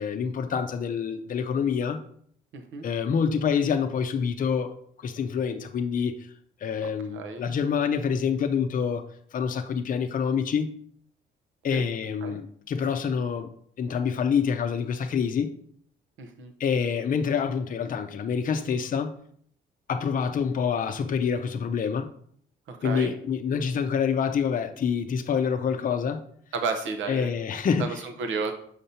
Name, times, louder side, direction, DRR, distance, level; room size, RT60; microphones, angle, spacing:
voice 1, 0.0-2.0 2.8-6.2 6.6-9.1 9.3-10.7 11.6-13.5 13.8-15.5 16.6-19.2 19.9-22.1 22.8-26.2 27.1-28.0, left 6 dB, 45° left, 0.6 m, -27 dB
voice 2, 2.5-2.8 7.1-7.4 11.7-11.8 12.2-12.4 16.2-16.5 22.7-23.1 26.5-27.3 27.8-28.5, right 4 dB, 75° right, 0.8 m, -32 dB
6.6 x 5.2 x 2.8 m
cardioid pair, 90°, 20 cm